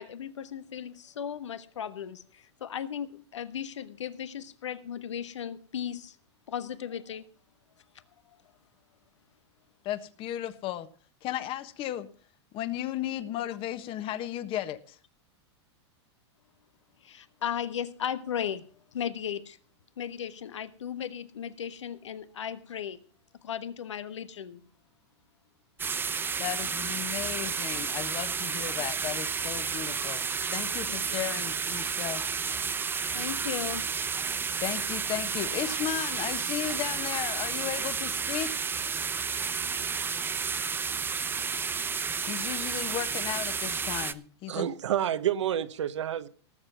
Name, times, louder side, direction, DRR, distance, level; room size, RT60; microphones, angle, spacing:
voice 1, 0.0-6.2 6.5-7.2 8.3-8.4 17.0-19.6 20.0-23.0 23.4-24.7 30.9-31.0 33.1-33.9, left 9 dB, 90° left, 1.3 m, -36 dB
voice 2, 9.8-10.9 11.2-12.1 12.5-15.0 26.4-30.2 30.5-32.2 34.6-38.7 42.3-44.7, left 12 dB, 35° left, 1.4 m, -35 dB
sound 1, 25.8-44.1, right 5 dB, 15° right, 0.8 m, -31 dB
voice 3, 44.5-46.3, right 10 dB, 80° right, 1.2 m, -29 dB
18.5 x 7.6 x 5.7 m
hypercardioid pair, 125°, 15 cm